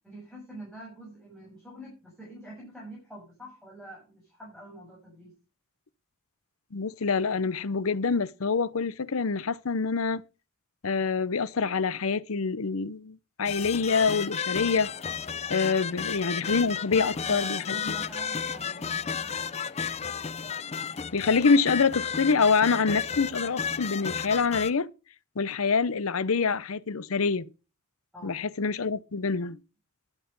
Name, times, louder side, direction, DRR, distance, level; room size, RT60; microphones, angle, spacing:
voice 1, 0.0-5.3 15.6-15.8 16.9-19.4 28.1-28.4, right 1 dB, 5° left, 6.7 m, -46 dB
voice 2, 6.7-10.2 10.8-14.9 15.5-17.9 21.1-24.9 25.4-27.5 28.2-29.6, left 5 dB, 75° left, 0.7 m, -26 dB
sound 1, 13.4-24.7, left 6 dB, 30° left, 0.5 m, -33 dB
11.5 x 9.2 x 5.3 m
head